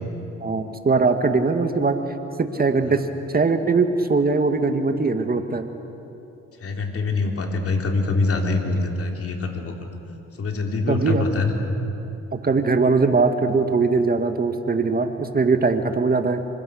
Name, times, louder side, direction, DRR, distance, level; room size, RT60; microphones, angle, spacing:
voice 1, 0.4-2.0 2.4-3.1 3.3-5.7 10.9-11.3 12.3-16.4, right 4 dB, 30° right, 7 dB, 2.0 m, -21 dB
voice 2, 6.6-9.9 10.4-11.6, left 3 dB, 50° left, 2 dB, 3.7 m, -24 dB
28.0 x 25.5 x 6.6 m, 2.9 s
cardioid pair, 90°, 30 cm